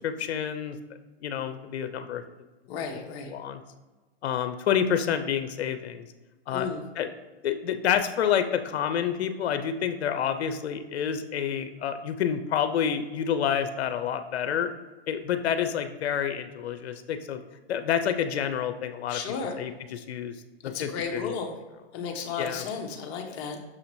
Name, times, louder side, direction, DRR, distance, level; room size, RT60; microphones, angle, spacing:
voice 1, 0.0-0.8 1.2-2.2 2.8-2.9 3.3-3.6 4.2-6.0 6.5-6.7 7.0-7.1 7.4-14.7 15.1-17.4 17.7-19.2 19.6-20.3 20.6-21.3 22.4-22.6, left 8 dB, 80° left, 8 dB, 0.5 m, -28 dB
voice 2, 2.7-3.3 6.5-6.8 19.1-19.6 20.6-21.5 21.9-23.6, left 5 dB, 30° left, 2 dB, 0.6 m, -33 dB
6.1 x 2.9 x 2.6 m, 1.2 s
hypercardioid pair, 140°, 32 cm